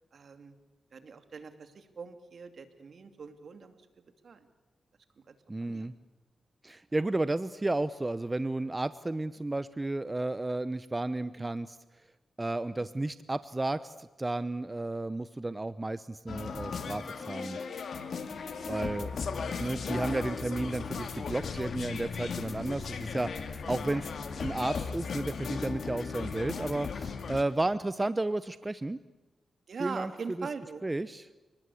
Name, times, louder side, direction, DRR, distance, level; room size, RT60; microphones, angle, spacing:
voice 1, 0.1-0.5 0.9-3.8 4.2-4.5 5.3-5.4 5.6-5.9 11.4-11.5 12.8-12.9 17.4-17.6 18.5-19.1 21.8-21.9 23.5-23.8 24.4-24.5 29.7-30.8, right 5 dB, 65° right, 8 dB, 2.6 m, -43 dB
voice 2, 5.5-5.9 6.6-11.8 12.4-17.6 18.7-19.1 19.6-24.1 24.4-29.0 29.8-30.1 30.8-31.2, right 2 dB, 25° right, 14 dB, 0.9 m, -32 dB
sound 1, 16.3-27.4, left 5 dB, 70° left, 2.4 m, -36 dB
29.5 x 19.5 x 8.5 m, 1.1 s
cardioid pair, 60°, 0 cm